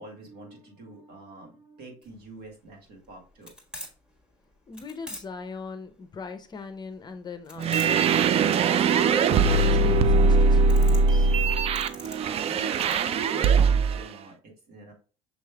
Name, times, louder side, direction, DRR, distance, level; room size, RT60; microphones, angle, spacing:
voice 1, 0.0-3.5 11.9-12.7 13.1-14.9, right 2 dB, 70° right, 1.8 m, -47 dB
sound 1, 2.0-13.0, left 1 dB, 5° right, 1.4 m, -45 dB
voice 2, 4.7-11.3, left 5 dB, 25° left, 0.6 m, -40 dB
sound 2, 7.6-14.0, right 4 dB, 40° right, 0.4 m, -21 dB
6.4 x 3.2 x 2.3 m
supercardioid pair, 95°, 16 cm